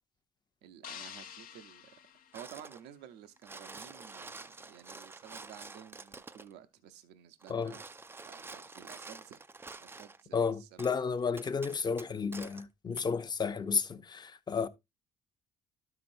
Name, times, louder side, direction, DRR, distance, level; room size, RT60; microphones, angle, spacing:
voice 1, 0.6-1.9 2.3-7.8 8.2-9.4 9.8-10.9, right 10 dB, 85° right, 0.7 m, -52 dB
sound 1, 0.8-3.1, left 9 dB, 55° left, 0.7 m, -49 dB
sound 2, 2.3-2.9 3.2-6.5 7.4-10.2 10.8-10.9 11.4-12.6 13.0-13.1, right 3 dB, 15° right, 0.4 m, -48 dB
voice 2, 10.3-14.7, left 5 dB, 25° left, 0.7 m, -32 dB
12.0 x 5.9 x 2.6 m
cardioid pair, 110°, 17 cm